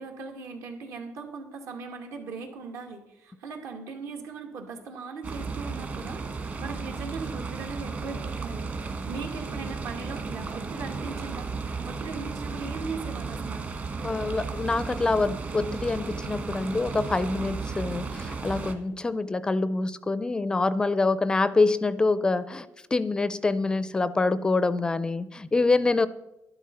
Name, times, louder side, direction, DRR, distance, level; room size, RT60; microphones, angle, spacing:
voice 1, 0.0-13.7, right 4 dB, 75° right, 3 dB, 2.4 m, -39 dB
sound 1, 5.2-18.7, right 4 dB, 35° right, 1.5 m, -34 dB
voice 2, 14.0-26.1, left 3 dB, 15° left, 15 dB, 0.4 m, -26 dB
11.5 x 11.0 x 5.5 m, 0.93 s
cardioid pair, 155°, 5 cm